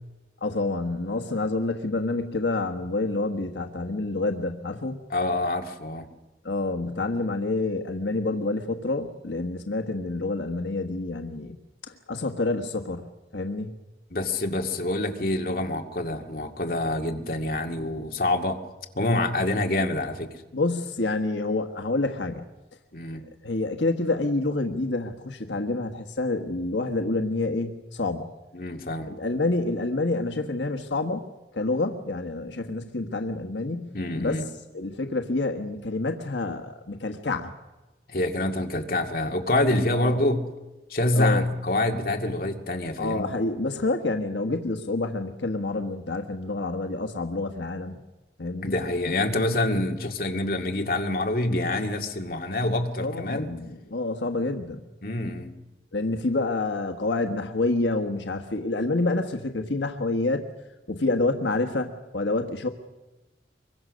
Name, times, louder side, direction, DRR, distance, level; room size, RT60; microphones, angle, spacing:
voice 1, 0.4-5.0 6.4-11.6 12.1-13.7 20.5-22.4 23.4-28.3 29.1-31.3 31.5-33.9 34.2-34.4 34.7-37.5 40.0-40.2 41.2-41.4 43.0-48.0 48.4-48.7 53.0-54.8 55.9-60.4 60.9-62.7, left 2 dB, 90° left, 5 dB, 1.4 m, -28 dB
voice 2, 5.1-6.1 14.1-18.6 18.9-20.3 22.9-23.2 28.5-29.1 33.9-34.5 38.1-40.4 40.9-43.3 48.6-53.5 55.0-55.5, left 1 dB, 55° left, 3 dB, 2.2 m, -26 dB
25.0 x 23.0 x 6.4 m, 1.1 s
head